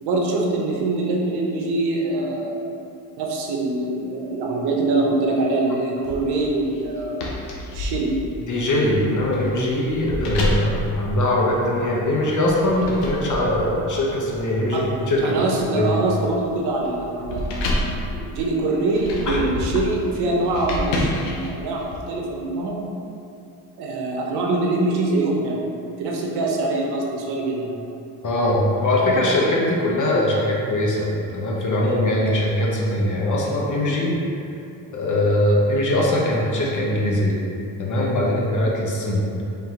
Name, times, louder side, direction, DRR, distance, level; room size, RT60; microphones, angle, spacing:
voice 1, 0.0-2.7 3.2-7.2 7.7-8.1 14.7-14.8 15.2-22.8 23.8-25.6 26.0-27.8, right 2 dB, 70° right, -1 dB, 0.8 m, -24 dB
sound 1, 6.0-11.9 12.4-22.0, left 1 dB, 85° left, 0.8 m, -30 dB
voice 2, 8.4-15.4 15.7-15.9 19.3-19.4 28.2-34.1 34.9-37.4 37.8-39.2, left 1 dB, 45° left, -3 dB, 0.9 m, -21 dB
3.7 x 2.9 x 3.7 m, 2.7 s
supercardioid pair, 80°, 41 cm